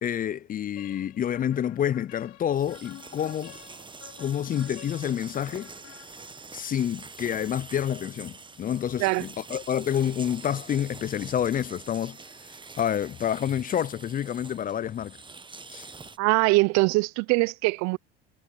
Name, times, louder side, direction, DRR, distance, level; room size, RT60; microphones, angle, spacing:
voice 1, 0.0-3.6 4.2-5.7 6.5-12.2 12.8-15.2 15.7-15.9, left 9 dB, 30° left, 0.4 m, -28 dB
sound 1, 0.8-6.6, left 18 dB, 60° left, 1.4 m, -50 dB
sound 2, 2.5-16.2, right 4 dB, 15° right, 1.2 m, -45 dB
voice 2, 16.2-18.0, right 25 dB, 65° right, 0.7 m, -22 dB
hypercardioid pair, 80°, 30 cm